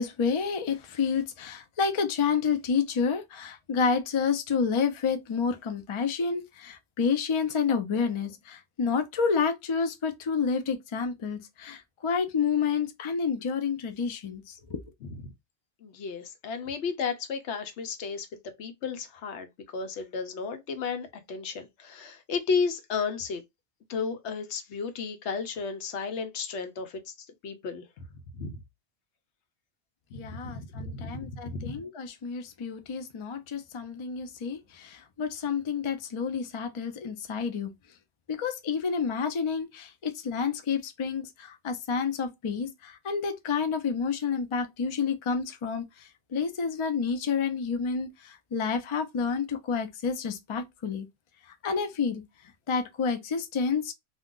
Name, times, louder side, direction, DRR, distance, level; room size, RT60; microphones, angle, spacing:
voice 1, 0.0-14.8 30.1-37.7 38.3-51.1 51.5-52.2 52.7-53.9, left 5 dB, 45° left, 0.4 m, -29 dB
voice 2, 15.8-23.4 23.9-27.1 27.4-27.8 28.3-28.6 30.1-31.8, left 5 dB, 85° left, 1.0 m, -33 dB
2.4 x 2.2 x 3.6 m
omnidirectional pair, 1.1 m